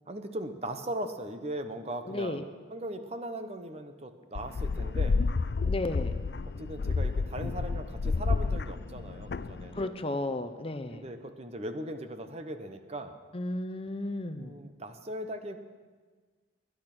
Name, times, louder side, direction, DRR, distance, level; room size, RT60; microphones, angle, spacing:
voice 1, 0.1-5.2 6.4-10.0 10.9-13.2 14.3-15.6, right 1 dB, 35° right, 8 dB, 1.0 m, -39 dB
voice 2, 2.1-2.4 5.6-6.1 9.7-11.0 13.3-14.5, left 2 dB, 30° left, 9 dB, 0.7 m, -33 dB
sound 1, 4.3-9.8, left 4 dB, 60° left, 0.4 m, -30 dB
21.5 x 10.5 x 6.1 m, 1.4 s
head